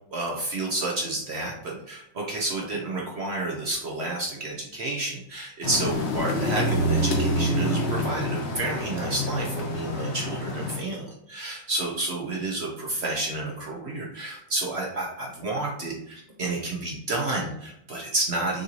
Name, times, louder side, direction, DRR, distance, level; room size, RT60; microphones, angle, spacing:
voice 1, 0.1-18.6, right 2 dB, 55° right, -2 dB, 0.7 m, -30 dB
sound 1, 5.6-10.8, equal, 55° left, 0.8 m, -27 dB
6.5 x 2.6 x 3.0 m, 0.74 s
omnidirectional pair, 2.1 m